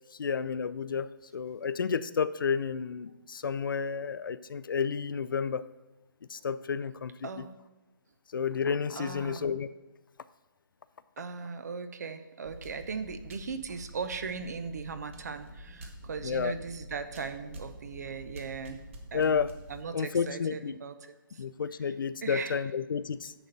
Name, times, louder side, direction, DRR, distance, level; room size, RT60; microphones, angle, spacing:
voice 1, 0.2-5.7 6.3-7.4 8.3-9.7 16.2-16.5 19.1-19.5 19.9-20.8 21.4-23.3, left 6 dB, 70° left, 15 dB, 0.5 m, -31 dB
voice 2, 7.2-7.6 8.9-9.6 11.2-18.8 19.1-21.4 21.8-21.9 22.2-22.6, right 5 dB, 50° right, 11 dB, 0.8 m, -38 dB
sound 1, 12.5-19.8, equal, 35° right, 1.1 m, -48 dB
10.0 x 4.3 x 6.6 m, 1.1 s
hypercardioid pair, 165°, 12 cm